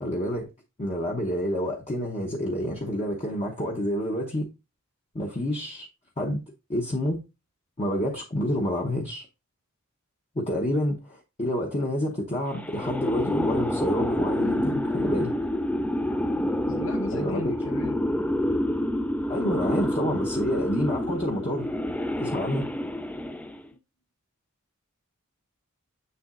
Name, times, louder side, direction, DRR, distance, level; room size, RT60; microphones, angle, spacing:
voice 1, 0.0-0.5 0.8-4.5 5.1-5.9 6.2-6.4 6.7-7.2 7.8-9.3 10.3-15.4 17.1-17.5 19.3-21.7 22.2-22.7, equal, 30° left, 0.9 m, -28 dB
horror Ghost low-pitched sound, 12.5-23.7, left 1 dB, 5° left, 0.3 m, -28 dB
voice 2, 16.3-18.0, left 2 dB, 60° left, 0.7 m, -37 dB
7.0 x 6.9 x 2.5 m
head